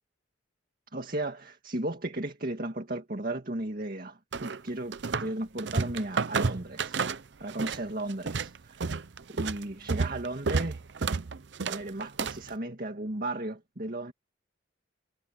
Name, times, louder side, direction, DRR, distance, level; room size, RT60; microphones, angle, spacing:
voice 1, 0.9-7.0 7.4-9.0 9.3-10.8 11.7-14.1, right 1 dB, 50° right, 2.0 m, -35 dB
sound 1, 4.3-5.3 5.6-7.8 8.1-12.5, right 4 dB, 65° right, 0.6 m, -30 dB
head